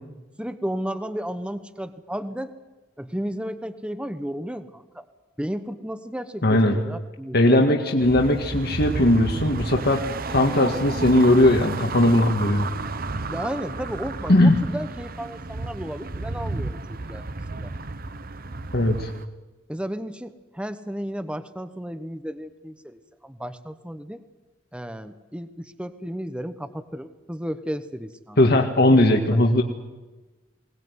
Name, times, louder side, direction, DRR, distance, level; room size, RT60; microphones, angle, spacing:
voice 1, 0.4-2.5 3.0-5.1 5.4-7.6 13.3-17.7 19.7-24.2 24.7-28.4 28.8-29.4, equal, 5° right, 11 dB, 1.1 m, -33 dB
voice 2, 6.4-6.8 7.3-10.0 10.3-12.7 14.3-14.6 18.7-19.1 28.4-29.6, left 1 dB, 55° left, 2 dB, 1.9 m, -18 dB
sound 1, 8.0-19.2, right 3 dB, 50° right, 1.0 m, -32 dB
22.0 x 19.5 x 9.5 m, 1.2 s
head